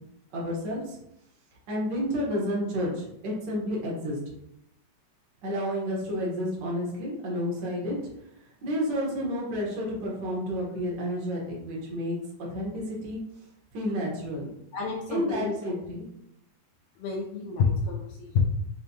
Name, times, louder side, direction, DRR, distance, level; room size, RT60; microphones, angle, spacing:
voice 1, 0.3-1.0 1.7-4.2 5.4-8.0 8.6-12.2 12.5-13.2 13.7-14.5 15.1-16.0, equal, 70° right, -3 dB, 1.0 m, -30 dB
voice 2, 14.7-15.6 17.0-18.4, left 5 dB, 80° left, -1 dB, 1.8 m, -28 dB
6.4 x 2.2 x 2.7 m, 0.78 s
omnidirectional pair, 3.8 m